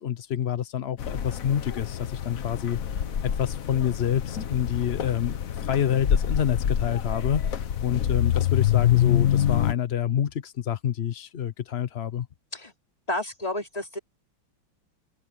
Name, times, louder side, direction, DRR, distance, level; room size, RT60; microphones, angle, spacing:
voice 1, 0.0-5.3 5.6-12.3, left 9 dB, 70° left, 0.6 m, -28 dB
sound 1, 1.0-9.7, left 10 dB, 50° left, 1.2 m, -26 dB
voice 2, 13.1-14.0, left 1 dB, 20° left, 3.1 m, -31 dB
open air
omnidirectional pair, 2.2 m